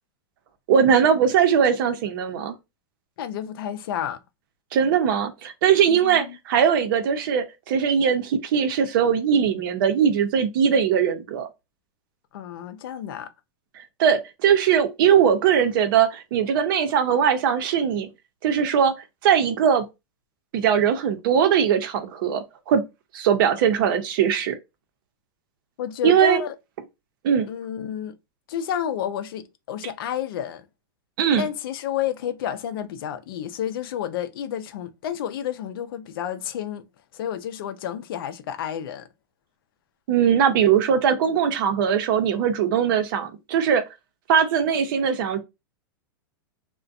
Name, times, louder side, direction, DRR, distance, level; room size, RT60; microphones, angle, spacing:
voice 1, 0.7-2.5 4.7-11.5 14.0-18.1 18.4-18.9 19.2-19.8 20.5-22.8 23.1-24.6 26.0-26.4 27.2-27.5 31.2-31.5 40.1-43.8 44.3-45.4, right 8 dB, 60° right, 0.6 m, -20 dB
voice 2, 3.2-4.2 5.9-6.4 12.3-13.3 25.8-26.5 27.5-28.1 28.5-30.6 31.4-36.8 37.1-39.1, left 9 dB, 70° left, 0.5 m, -30 dB
2.5 x 2.1 x 2.4 m
hypercardioid pair, 130°, 12 cm